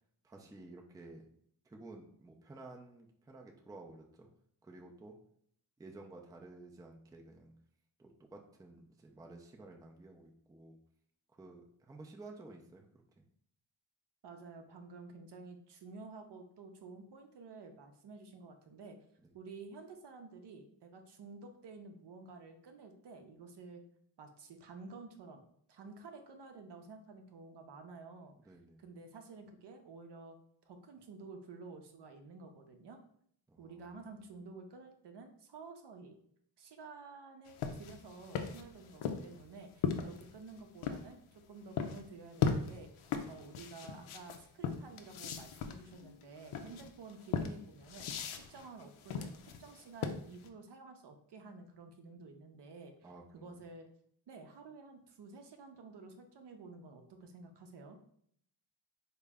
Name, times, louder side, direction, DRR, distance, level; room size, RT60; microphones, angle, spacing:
voice 1, 0.2-1.3 1.7-4.3 4.6-5.2 5.8-7.5 8.0-10.8 11.3-12.9 28.4-28.8 33.5-34.1 46.6-46.8 53.0-53.6, right 2 dB, 10° right, 1 dB, 0.4 m, -53 dB
voice 2, 14.2-19.0 19.3-23.8 24.2-30.4 30.6-33.0 33.6-36.2 36.6-48.1 48.4-53.9 54.3-58.0, right 3 dB, 55° right, 5 dB, 0.7 m, -51 dB
sound 1, 37.5-41.1 41.8-42.0 42.4-50.5, left 6 dB, 80° left, 0.6 m, -37 dB
3.7 x 2.2 x 3.4 m, 0.67 s
cardioid pair, 75°, 49 cm